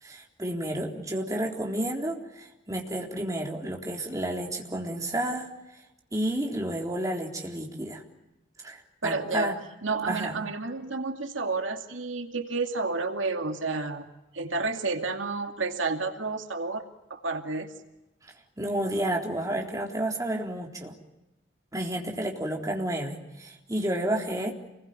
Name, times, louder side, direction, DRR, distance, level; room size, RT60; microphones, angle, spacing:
voice 1, 0.0-5.5 6.1-8.0 8.6-9.6 10.1-10.4 18.6-21.0 21.7-24.5, right 1 dB, 15° right, 1 dB, 3.8 m, -31 dB
voice 2, 9.0-14.1 14.3-16.8 17.1-17.7, right 3 dB, 80° right, 5 dB, 2.5 m, -30 dB
28.5 x 22.0 x 9.2 m, 1.0 s
head